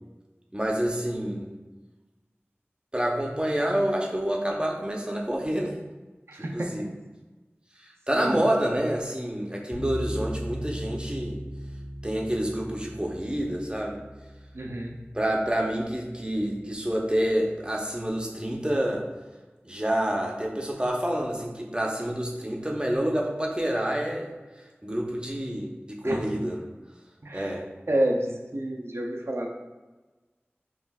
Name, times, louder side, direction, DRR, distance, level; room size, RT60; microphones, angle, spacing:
voice 1, 0.5-1.5 2.9-5.8 6.4-6.9 7.8-11.4 12.0-14.0 15.1-19.0 19.6-24.3 24.8-26.7 27.3-27.6, right 1 dB, 20° right, 0 dB, 0.6 m, -28 dB
voice 2, 6.3-6.7 8.1-8.4 14.5-14.9 26.0-26.2 27.2-27.6 27.9-29.5, right 1 dB, 70° right, 0 dB, 0.5 m, -29 dB
sound 1, 9.7-16.8, equal, 20° left, 0.7 m, -38 dB
5.4 x 2.5 x 2.3 m, 1.2 s
wide cardioid pair, 40°, 4 cm